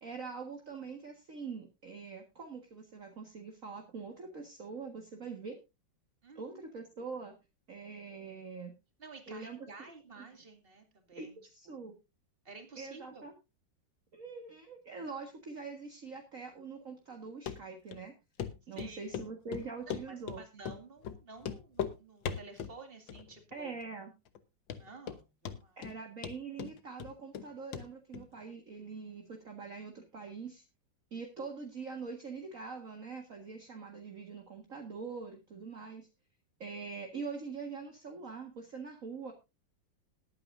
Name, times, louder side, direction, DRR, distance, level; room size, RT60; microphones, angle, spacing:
voice 1, 0.0-5.6 6.4-7.4 7.7-8.7 9.3-9.7 11.2-12.0 12.8-13.4 14.1-18.1 18.7-20.4 23.5-24.1 25.8-30.6 31.1-36.1 36.6-39.3, right 4 dB, 45° right, 3 dB, 2.0 m, -44 dB
voice 2, 6.2-6.6 9.0-11.4 11.7-11.8 12.4-13.2 18.8-19.2 19.9-23.8 24.7-25.8, right 4 dB, 30° right, 5 dB, 2.5 m, -52 dB
Run, 17.5-17.6 17.9-18.0 18.4-18.5 18.8-19.3 19.5-20.4 20.6-20.8 21.0-21.2 21.4-21.9 22.2-22.7 23.1-23.5 23.8-23.9 24.3-24.4 24.7-25.2 25.4-25.9 26.2-27.5 27.7-27.8 28.1-28.2, left 8 dB, 85° left, 1.8 m, -38 dB
20.5 x 9.0 x 2.6 m, 0.26 s
omnidirectional pair, 2.0 m